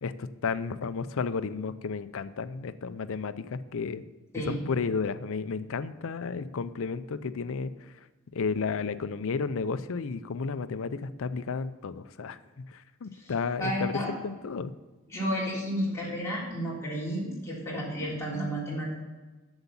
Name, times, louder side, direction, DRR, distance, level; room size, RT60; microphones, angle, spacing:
voice 1, 0.0-4.0 4.4-7.7 8.3-12.4 12.7-14.7, left 5 dB, 65° left, 12 dB, 0.5 m, -32 dB
voice 2, 13.6-14.1 15.1-18.9, equal, 15° left, -7 dB, 3.5 m, -32 dB
7.9 x 7.1 x 7.0 m, 1.2 s
head